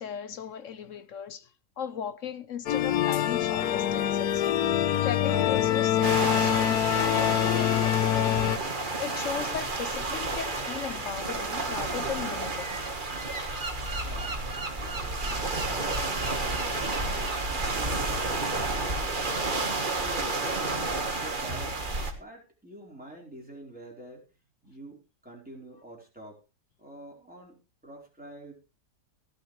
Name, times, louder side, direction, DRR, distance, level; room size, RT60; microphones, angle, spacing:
voice 1, 0.0-1.5 1.8-4.5 5.0-8.3 9.0-12.8, left 8 dB, 60° left, 1.1 m, -37 dB
sound 1, 2.7-8.6, left 11 dB, 75° left, 1.3 m, -25 dB
sound 2, 6.0-22.1, right 3 dB, 30° right, 1.6 m, -31 dB
voice 2, 14.0-19.4 20.0-24.2 24.6-26.4 26.8-28.5, right 1 dB, 5° right, 4.4 m, -47 dB
16.0 x 11.5 x 3.3 m
omnidirectional pair, 1.7 m